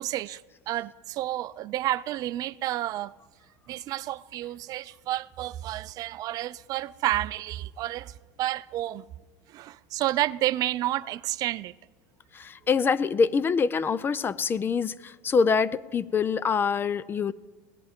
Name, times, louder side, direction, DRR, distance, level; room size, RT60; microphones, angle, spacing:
voice 1, 0.0-3.1 3.7-9.0 9.5-11.7, right 14 dB, 45° right, 0.4 m, -30 dB
voice 2, 12.3-17.3, left 5 dB, 25° left, 0.5 m, -25 dB
17.5 x 11.0 x 5.2 m
supercardioid pair, 100°, 9 cm